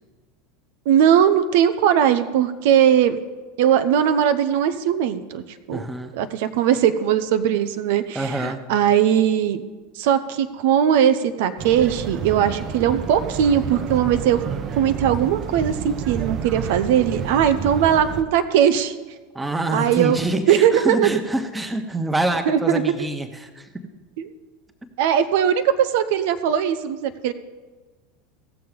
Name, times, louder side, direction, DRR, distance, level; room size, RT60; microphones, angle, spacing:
voice 1, 0.9-3.2 3.6-5.4 5.7-5.8 6.1-9.6 10.0-14.4 14.7-18.9 19.7-20.2 20.5-21.1 22.5-22.8 24.2-24.3 25.0-27.3, right 9 dB, 60° right, 10 dB, 0.7 m, -19 dB
voice 2, 5.7-6.1 8.1-8.6 19.3-23.7, right 1 dB, 10° right, 6 dB, 1.4 m, -26 dB
sound 1, 11.6-18.2, right 7 dB, 40° right, 1.0 m, -30 dB
17.0 x 6.9 x 5.3 m, 1.4 s
figure-of-eight pair, 80°, 0 cm